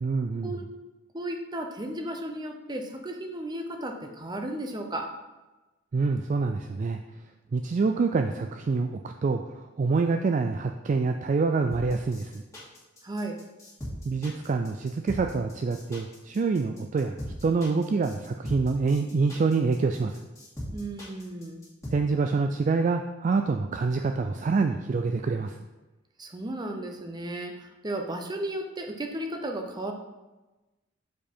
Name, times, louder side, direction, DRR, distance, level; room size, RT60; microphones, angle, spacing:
voice 1, 0.0-0.5 5.9-7.0 7.5-12.4 14.0-20.2 21.9-25.6, right 4 dB, 40° right, 6 dB, 0.3 m, -26 dB
voice 2, 1.1-5.1 13.0-13.4 20.7-21.6 26.2-29.9, right 1 dB, 20° right, 4 dB, 0.7 m, -34 dB
sound 1, 11.7-21.9, equal, 15° left, 2.3 m, -39 dB
7.0 x 4.9 x 4.4 m, 1.1 s
head